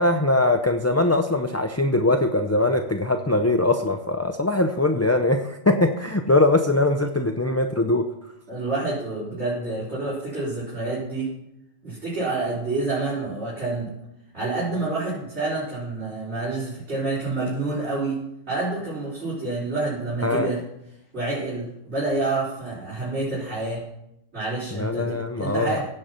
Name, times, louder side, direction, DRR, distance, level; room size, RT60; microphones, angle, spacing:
voice 1, 0.0-8.1 20.2-20.5 24.7-25.8, left 2 dB, 20° left, 4 dB, 0.5 m, -21 dB
voice 2, 8.5-11.3 11.8-13.9 14.3-20.6 21.1-23.8 24.3-25.9, right 2 dB, 50° right, -9 dB, 4.7 m, -28 dB
16.5 x 7.8 x 5.8 m, 0.84 s
omnidirectional pair, 1.4 m